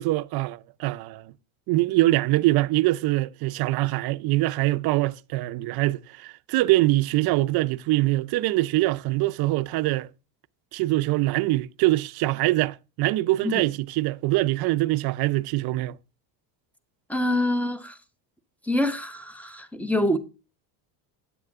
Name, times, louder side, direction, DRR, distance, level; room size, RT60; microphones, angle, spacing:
voice 1, 0.0-1.3 1.7-10.1 10.7-16.0, right 18 dB, 50° right, 0.7 m, -23 dB
voice 2, 17.1-18.0 18.6-20.2, left 1 dB, 5° left, 1.1 m, -25 dB
10.0 x 7.9 x 3.6 m
supercardioid pair, 110°, 47 cm